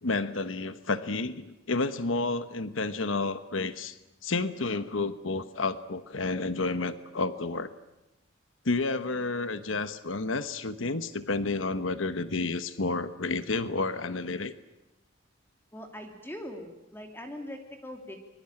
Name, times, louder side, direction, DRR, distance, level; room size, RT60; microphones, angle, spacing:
voice 1, 0.0-4.0 4.2-7.7 8.6-14.5, left 3 dB, 75° left, 11 dB, 1.2 m, -30 dB
voice 2, 15.7-18.2, left 1 dB, 10° left, 3 dB, 2.7 m, -41 dB
24.5 x 23.0 x 8.8 m, 0.94 s
head